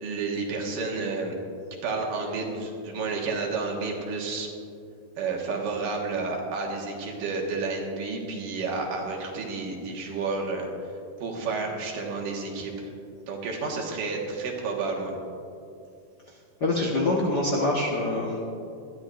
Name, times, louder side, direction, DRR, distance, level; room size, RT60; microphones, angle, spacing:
voice 1, 0.0-1.3 1.8-4.5 5.2-10.7 11.2-12.9 13.3-15.1, right 4 dB, 75° right, 0 dB, 3.2 m, -30 dB
voice 2, 16.6-18.4, left 2 dB, 65° left, -3 dB, 1.0 m, -25 dB
21.0 x 13.5 x 2.6 m, 2.5 s
omnidirectional pair, 3.9 m